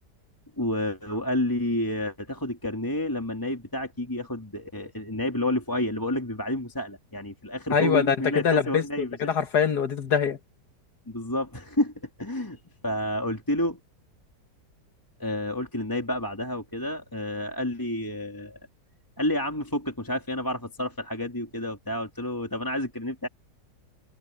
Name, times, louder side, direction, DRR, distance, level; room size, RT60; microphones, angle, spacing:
voice 1, 0.6-9.2 11.1-11.9 12.2-13.8 15.2-18.6 19.2-23.3, left 1 dB, 10° left, 2.5 m, -30 dB
voice 2, 7.7-10.4, left 7 dB, 65° left, 2.2 m, -24 dB
omnidirectional pair, 1.9 m